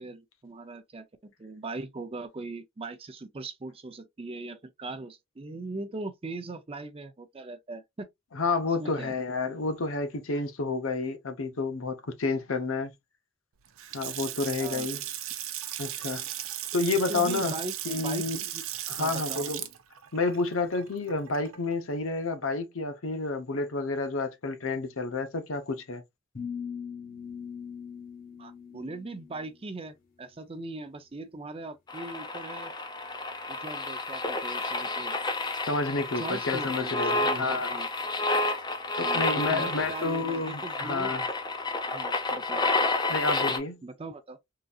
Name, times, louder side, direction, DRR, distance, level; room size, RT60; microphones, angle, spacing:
voice 1, 0.0-8.1 8.8-9.2 14.6-14.9 17.1-18.2 18.5-18.6 19.0-19.5 28.4-32.7 33.5-35.2 36.1-37.9 39.0-41.1 41.9-42.6 43.8-44.4, right 2 dB, 25° right, 0.5 m, -40 dB
voice 2, 8.3-12.9 13.9-15.0 15.8-16.2 16.7-17.6 17.8-18.4 18.9-19.6 20.1-26.0 35.7-37.7 39.0-41.2 43.1-43.8, left 3 dB, 75° left, 0.7 m, -30 dB
Water tap faucet / Sink (filling or washing) / Splash splatter, 13.6-21.7, right 12 dB, 80° right, 0.6 m, -37 dB
sound 1, 26.3-29.5, left 7 dB, 45° left, 0.9 m, -40 dB
sound 2, 31.9-43.6, left 2 dB, 20° left, 0.6 m, -30 dB
3.8 x 2.6 x 2.3 m
head